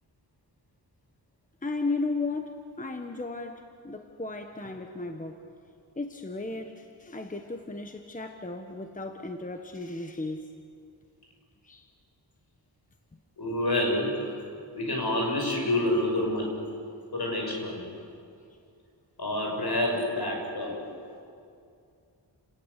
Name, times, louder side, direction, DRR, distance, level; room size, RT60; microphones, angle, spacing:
voice 1, 1.6-5.4 6.0-10.5 11.6-11.9, left 3 dB, 20° left, 5 dB, 1.2 m, -35 dB
voice 2, 13.4-14.3 14.7-16.6 17.1-17.8 19.2-20.8, left 1 dB, 60° left, 1 dB, 6.4 m, -28 dB
29.5 x 19.5 x 8.3 m, 2.4 s
wide cardioid pair, 115°, 43 cm